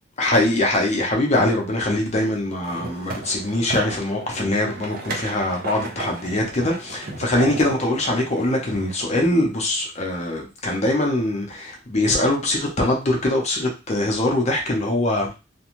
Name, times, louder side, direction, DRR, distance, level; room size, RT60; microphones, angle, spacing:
voice 1, 0.2-15.4, left 1 dB, 35° left, 0.6 m, -22 dB
sound 1, 2.6-8.9, right 2 dB, 50° right, 0.6 m, -34 dB
2.5 x 2.2 x 3.0 m
head